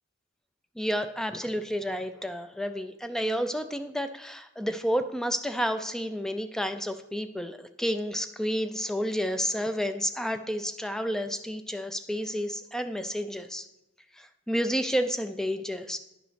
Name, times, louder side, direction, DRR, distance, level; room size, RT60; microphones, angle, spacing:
voice 1, 0.8-13.6 14.2-16.0, equal, ahead, 9 dB, 0.3 m, -30 dB
11.0 x 4.8 x 3.9 m, 0.91 s
head